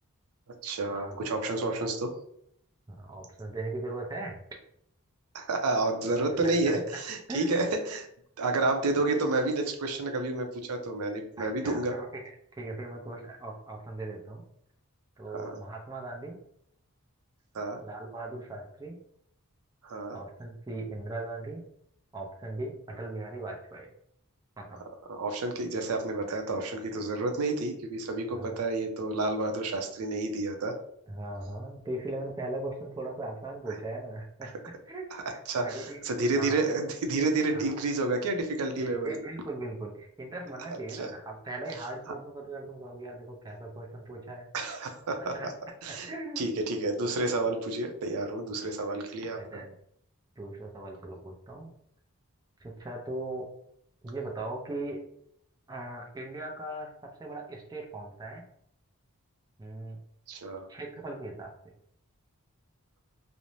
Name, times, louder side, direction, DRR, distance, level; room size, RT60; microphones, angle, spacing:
voice 1, 0.6-2.1 5.3-8.1 8.4-12.0 15.3-15.6 17.5-17.8 19.8-20.2 25.1-30.8 35.5-39.2 40.7-41.1 44.5-45.5 45.8-46.1 46.4-49.6 60.3-60.7, right 2 dB, 90° right, 5 dB, 0.5 m, -30 dB
voice 2, 2.9-4.4 6.4-6.8 7.3-7.6 11.4-12.2 12.6-14.4 15.2-16.4 17.8-19.0 20.1-21.6 22.1-23.9 24.6-24.8 28.3-28.6 31.1-34.5 34.9-36.0 36.3-36.6 37.5-37.7 38.8-44.5 45.3-45.5 45.9-46.6 49.4-49.7 50.4-51.7 52.6-53.5 54.0-55.0 55.7-56.9 57.2-58.4 59.6-60.0 60.7-61.5, right 2 dB, 15° right, 0 dB, 0.4 m, -39 dB
2.5 x 2.0 x 3.0 m, 0.69 s
head